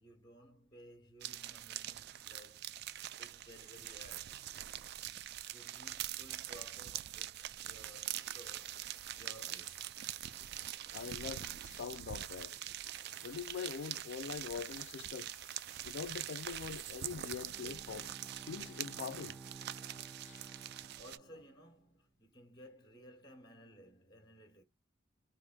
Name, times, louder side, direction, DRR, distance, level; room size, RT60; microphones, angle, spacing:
voice 1, 0.0-2.8 3.1-4.5 5.2-10.0 21.0-24.6, equal, 20° left, 1.1 m, -58 dB
sound 1, 1.2-21.2, right 12 dB, 55° right, 0.3 m, -44 dB
sound 2, 8.1-19.5, right 7 dB, 80° right, 1.4 m, -57 dB
voice 2, 10.9-12.6 13.2-15.3 15.8-18.1 18.5-19.4 20.2-20.5, left 6 dB, 60° left, 0.4 m, -43 dB
Bowed string instrument, 17.4-21.8, right 3 dB, ahead, 0.7 m, -54 dB
4.7 x 2.5 x 2.2 m
head